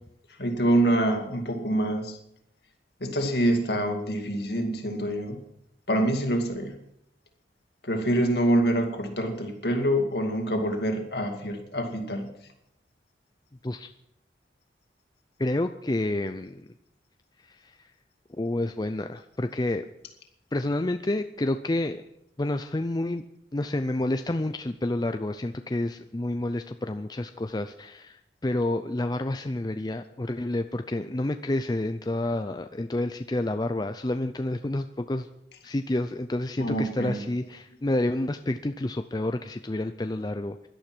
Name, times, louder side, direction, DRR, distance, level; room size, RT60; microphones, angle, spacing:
voice 1, 0.4-2.2 3.0-5.4 5.9-6.7 7.8-12.3 36.6-37.2, right 1 dB, 60° left, 4 dB, 2.4 m, -26 dB
voice 2, 15.4-16.7 17.6-17.7 18.4-19.9 20.5-22.0 22.4-23.2 23.5-35.3 35.6-40.7, left 1 dB, 20° left, 8 dB, 0.5 m, -29 dB
17.0 x 11.5 x 6.1 m, 0.77 s
head